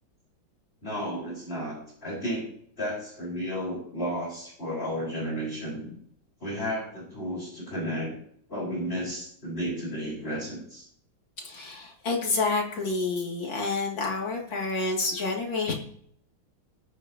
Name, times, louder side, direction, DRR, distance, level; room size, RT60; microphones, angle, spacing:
voice 1, 0.8-2.5 2.8-5.9 6.4-8.1 8.5-10.9, equal, 25° left, -5 dB, 5.1 m, -33 dB
voice 2, 11.4-15.7, left 3 dB, 65° left, -1 dB, 3.4 m, -29 dB
21.0 x 9.9 x 3.0 m, 0.66 s
omnidirectional pair, 2.3 m